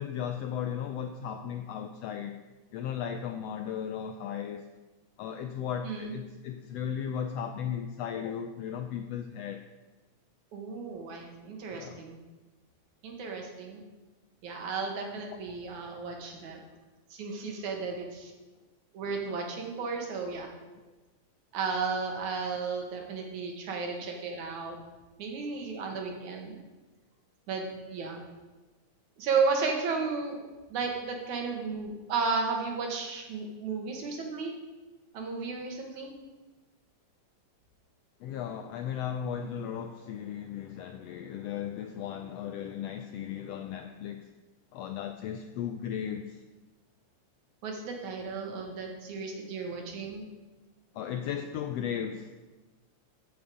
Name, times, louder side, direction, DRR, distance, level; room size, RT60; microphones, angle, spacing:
voice 1, 0.0-2.4 2.7-4.7 5.2-9.6 11.7-12.0 15.3-15.4 15.9-16.2 38.2-44.3 44.7-46.4 50.9-52.3, left 8 dB, 75° left, 7 dB, 1.5 m, -36 dB
voice 2, 5.8-6.1 10.5-12.2 13.0-13.8 14.4-16.6 17.1-18.3 18.9-20.5 21.5-24.8 25.2-26.6 27.5-28.2 29.2-30.4 30.7-34.5 35.1-36.1 47.6-50.2, right 4 dB, 85° right, 2 dB, 3.1 m, -33 dB
14.5 x 7.0 x 5.1 m, 1.2 s
omnidirectional pair, 3.3 m